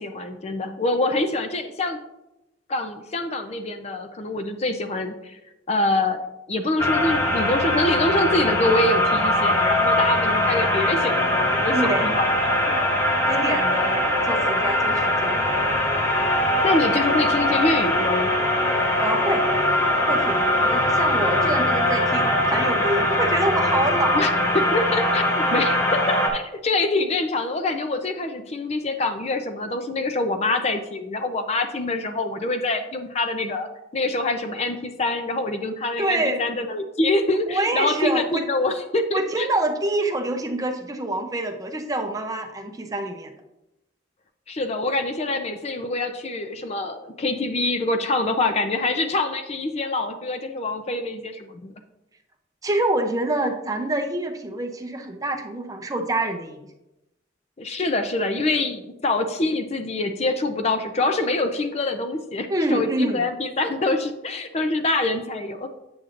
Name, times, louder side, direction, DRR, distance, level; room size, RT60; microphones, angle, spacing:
voice 1, 0.0-2.0 2.7-5.4 5.7-6.2 6.5-12.3 13.0-13.1 16.6-18.3 24.1-39.5 44.5-51.7 57.6-65.7, left 2 dB, 35° left, 7 dB, 0.5 m, -25 dB
sound 1, 6.8-26.3, left 1 dB, 15° left, 1.0 m, -21 dB
voice 2, 11.7-12.1 13.3-15.4 19.0-19.4 20.1-24.2 36.0-36.4 37.5-38.4 39.1-43.4 52.6-56.7 62.5-63.2, right 1 dB, 20° right, 4 dB, 0.6 m, -26 dB
7.7 x 7.3 x 2.5 m, 0.92 s
head